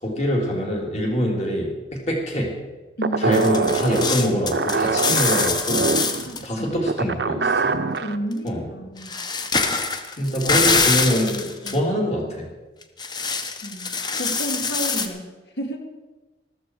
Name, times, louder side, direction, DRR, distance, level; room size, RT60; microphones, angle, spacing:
voice 1, 0.0-2.5 3.2-5.9 6.4-7.7 8.4-8.7 10.2-12.5, equal, 40° left, -1 dB, 3.5 m, -24 dB
voice 2, 3.0-3.4 6.3-6.7 7.1-7.5 8.0-9.2 11.6-11.8 13.6-15.8, right 1 dB, 75° left, 3 dB, 2.4 m, -32 dB
sound 1, 3.0-8.2, right 4 dB, 75° right, 0.7 m, -24 dB
sound 2, 3.3-6.4 8.3-8.4 9.0-11.8 12.8-15.1, left 4 dB, 25° left, 1.0 m, -24 dB
14.0 x 14.0 x 4.9 m, 1.2 s
head